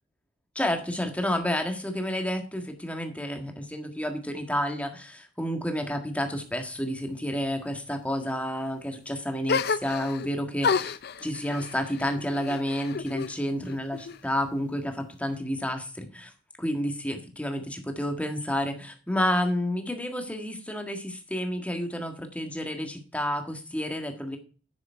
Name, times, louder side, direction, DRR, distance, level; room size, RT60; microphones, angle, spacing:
voice 1, 0.5-10.9 11.2-16.3 16.6-24.4, equal, 5° left, 5 dB, 1.6 m, -30 dB
sound 1, 9.5-10.3 10.6-13.3 13.7-14.5, left 5 dB, 55° left, 0.5 m, -30 dB
10.5 x 7.1 x 4.4 m, 0.37 s
head